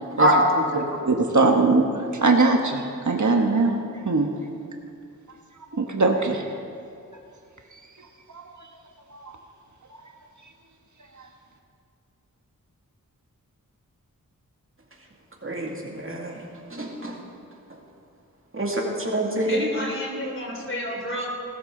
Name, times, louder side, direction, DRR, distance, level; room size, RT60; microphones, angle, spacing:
voice 1, 0.2-0.8 15.4-16.4 16.7-17.2 18.5-19.6, equal, 40° right, -1 dB, 2.4 m, -24 dB
voice 2, 0.8-1.9 2.2-3.7 4.0-4.3 5.7-6.4 8.3-8.4 9.1-9.2, right 3 dB, 60° right, 3 dB, 1.3 m, -21 dB
voice 3, 19.5-21.3, left 1 dB, 35° left, 0 dB, 3.3 m, -30 dB
19.0 x 13.5 x 3.9 m, 2.5 s
wide cardioid pair, 60°, 33 cm